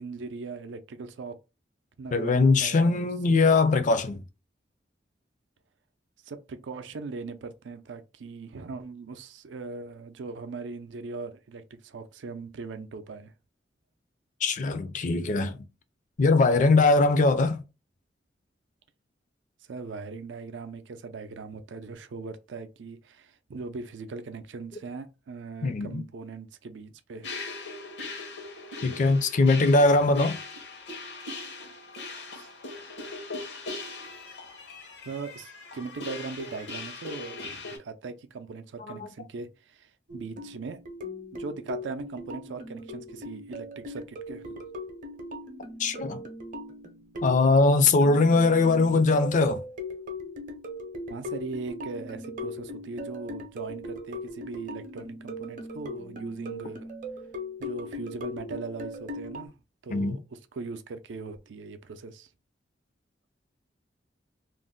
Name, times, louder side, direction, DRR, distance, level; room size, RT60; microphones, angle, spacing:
voice 1, 0.0-1.4 2.0-2.3 2.6-3.4 6.2-13.3 19.7-27.3 32.3-32.5 35.0-40.8 41.3-44.6 51.1-56.9 57.6-59.5 59.8-62.3, right 4 dB, 85° right, 0.4 m, -39 dB
voice 2, 2.1-4.2 14.4-15.6 16.2-17.6 25.6-26.0 28.8-30.4 38.9-39.1 45.8-46.2 47.2-49.6 59.9-60.2, left 3 dB, 45° left, 0.4 m, -21 dB
sound 1, 27.2-37.8, left 3 dB, 70° left, 0.8 m, -40 dB
sound 2, 40.1-59.5, left 1 dB, 50° right, 0.6 m, -39 dB
2.5 x 2.1 x 3.7 m
head